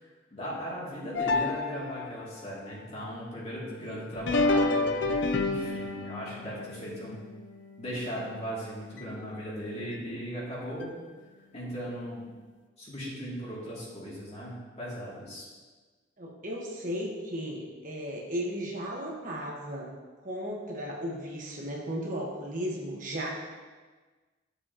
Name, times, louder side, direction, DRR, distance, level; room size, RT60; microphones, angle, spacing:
voice 1, 0.3-5.0 5.4-7.2 7.8-11.0 11.5-12.3 12.8-15.5, equal, 35° left, -7 dB, 2.6 m, -37 dB
sound 1, 1.1-2.3 4.1-8.5 9.0-9.1 9.9-10.0 10.8-10.9, left 3 dB, 65° left, 0.5 m, -30 dB
voice 2, 16.2-19.9 20.2-23.3, equal, 45° right, -2 dB, 1.3 m, -35 dB
11.5 x 7.0 x 2.9 m, 1.3 s
head